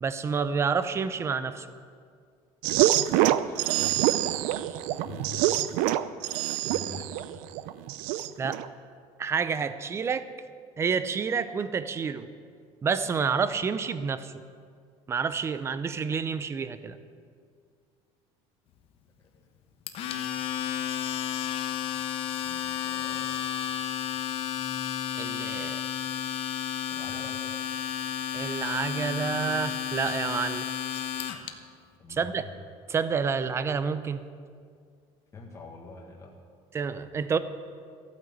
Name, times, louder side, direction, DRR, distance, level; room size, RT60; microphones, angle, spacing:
voice 1, 0.0-1.7 8.4-8.6 9.2-10.3 10.8-12.3 12.8-14.3 15.1-17.0 25.2-25.8 28.3-30.7 32.1-32.4 32.9-34.2 36.7-37.4, right 6 dB, 20° right, 12 dB, 0.6 m, -29 dB
sound 1, 2.6-8.7, right 14 dB, 75° right, 0.6 m, -26 dB
voice 2, 3.4-4.3 4.6-5.4 6.6-7.5 19.3-19.5 22.4-23.5 26.9-27.4 32.0-32.5 35.3-36.3, left 4 dB, 20° left, -1 dB, 1.6 m, -45 dB
Domestic sounds home sounds, 19.9-31.5, left 9 dB, 45° left, 1.1 m, -32 dB
14.0 x 9.4 x 8.0 m, 2.2 s
cardioid pair, 160°, 13 cm